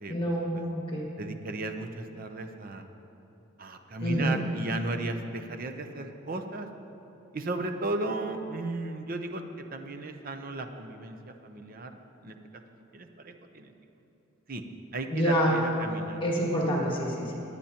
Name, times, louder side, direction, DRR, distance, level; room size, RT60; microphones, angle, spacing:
voice 1, 0.1-1.1 4.0-4.4 15.1-15.5 16.2-17.3, equal, 25° left, -3 dB, 1.8 m, -27 dB
voice 2, 1.2-2.8 3.6-6.7 7.3-9.4 9.7-11.9 12.2-12.4 12.9-13.7 14.5-14.6 14.9-16.4, right 2 dB, 45° right, 6 dB, 0.7 m, -35 dB
20.5 x 8.4 x 2.9 m, 2.9 s
head